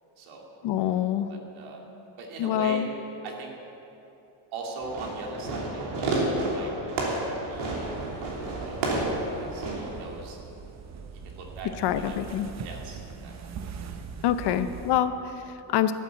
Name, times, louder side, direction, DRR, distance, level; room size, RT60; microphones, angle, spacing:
voice 1, 0.6-1.3 2.4-2.9 11.8-12.5 14.2-15.9, left 10 dB, 55° left, 11 dB, 0.7 m, -26 dB
voice 2, 1.3-1.8 2.2-2.9 3.2-3.5 4.5-6.1 6.4-6.7 7.5-7.9 8.4-10.4 11.2-11.7 12.0-12.2 12.6-13.3 14.5-14.6, right 3 dB, 75° right, 0 dB, 2.7 m, -40 dB
Fireworks, 4.8-10.0, right 2 dB, 60° right, 3.2 m, -30 dB
sound 1, 7.5-15.0, right 6 dB, 35° right, 0.8 m, -42 dB
13.0 x 8.5 x 8.1 m, 3.0 s
cardioid pair, 160°, 48 cm